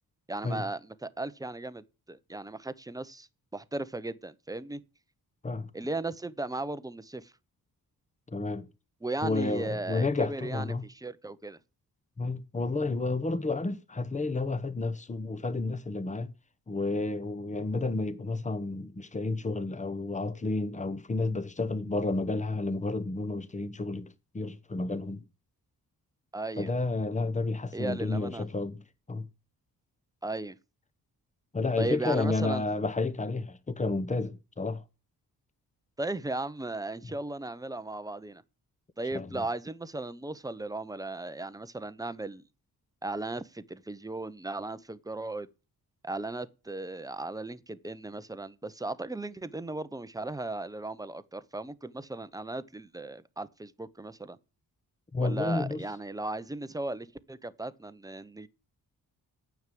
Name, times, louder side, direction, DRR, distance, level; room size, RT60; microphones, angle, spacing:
voice 1, 0.3-3.3 3.5-4.8 5.7-7.3 9.0-11.6 26.3-26.7 27.7-28.5 30.2-30.6 31.8-32.6 36.0-38.4 39.0-42.4 43.0-45.5 46.0-54.4 55.2-58.5, right 2 dB, 10° right, 0.7 m, -36 dB
voice 2, 8.3-8.7 9.2-10.8 12.2-16.3 16.7-25.2 26.6-28.8 29.1-29.2 31.5-34.8 39.1-39.5 55.1-55.9, left 3 dB, 20° left, 0.9 m, -31 dB
9.4 x 7.1 x 7.6 m
wide cardioid pair, 120°, 37 cm